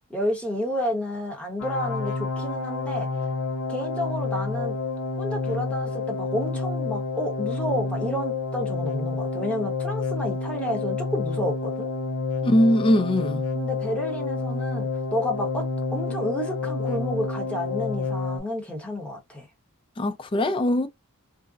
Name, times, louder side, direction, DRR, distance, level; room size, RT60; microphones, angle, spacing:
voice 1, 0.1-3.1 3.7-4.8 5.2-11.9 13.5-15.7 15.9-19.5, equal, 5° left, 0.9 m, -30 dB
sound 1, 1.6-18.4, left 4 dB, 75° left, 0.7 m, -29 dB
voice 2, 12.4-13.4 20.0-20.9, left 1 dB, 25° left, 0.3 m, -21 dB
2.6 x 2.0 x 2.3 m
head